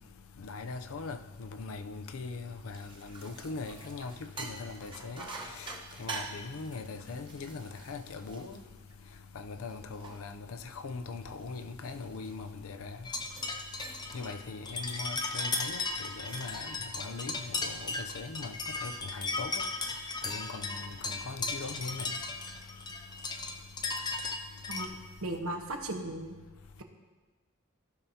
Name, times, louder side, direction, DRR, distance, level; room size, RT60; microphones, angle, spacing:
voice 1, 0.4-8.6 9.3-13.0 14.1-19.7 20.2-22.1, left 4 dB, 75° left, 0.5 m, -41 dB
sound 1, 2.4-9.2 9.7-12.7 13.2-13.5 13.8-14.3 14.6-14.9 16.0-16.6, right 3 dB, 25° right, 1.0 m, -46 dB
sound 2, 13.0-24.9, left 3 dB, 20° left, 0.5 m, -36 dB
voice 2, 25.2-26.3, right 1 dB, 80° right, 1.1 m, -36 dB
15.5 x 6.0 x 2.8 m
head